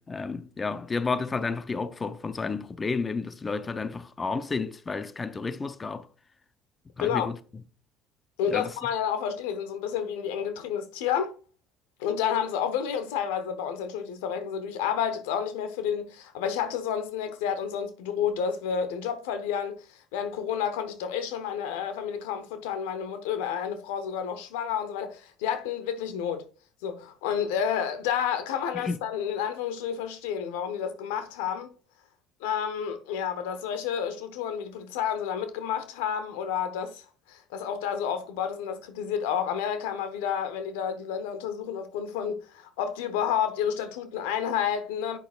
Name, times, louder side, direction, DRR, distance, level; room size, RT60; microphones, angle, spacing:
voice 1, 0.0-6.1 7.0-7.4 8.5-8.7 28.7-29.0, left 4 dB, 25° left, 0.6 m, -31 dB
voice 2, 8.4-11.4 12.0-26.5 26.8-31.7 32.4-37.0 37.3-45.2, left 8 dB, 90° left, 0.8 m, -30 dB
8.1 x 6.0 x 2.4 m
supercardioid pair, 85°, 0 cm